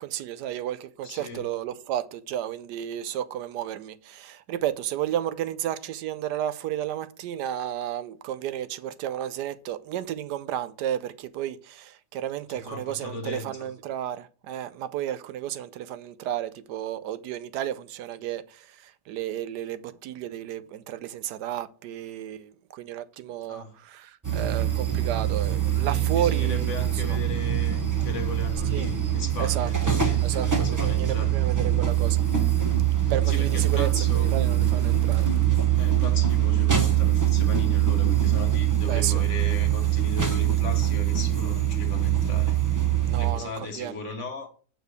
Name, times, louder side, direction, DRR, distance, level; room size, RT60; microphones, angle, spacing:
voice 1, 0.0-26.7 28.7-28.9 29.4-29.7 30.2-32.2 33.1-33.9 34.1-35.3 38.8-39.2 43.0-44.0, right 11 dB, 85° right, 1.2 m, -32 dB
voice 2, 1.0-1.5 12.5-13.7 23.5-23.8 25.9-31.3 33.0-34.3 35.8-42.5 43.2-44.5, left 3 dB, 50° left, 1.5 m, -37 dB
sound 1, 24.2-43.3, right 11 dB, 15° right, 0.7 m, -23 dB
6.8 x 4.6 x 6.6 m
omnidirectional pair, 1.7 m